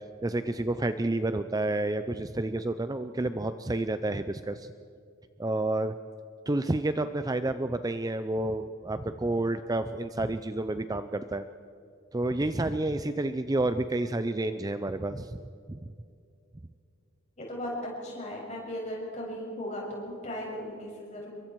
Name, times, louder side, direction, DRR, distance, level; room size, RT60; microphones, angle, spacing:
voice 1, 0.2-4.7 5.4-5.9 6.5-11.4 12.1-15.4 15.7-15.9, right 2 dB, 15° right, 10 dB, 0.5 m, -30 dB
voice 2, 17.4-17.7 18.0-21.3, equal, 35° left, -3 dB, 6.8 m, -37 dB
29.0 x 23.0 x 4.6 m, 2.5 s
head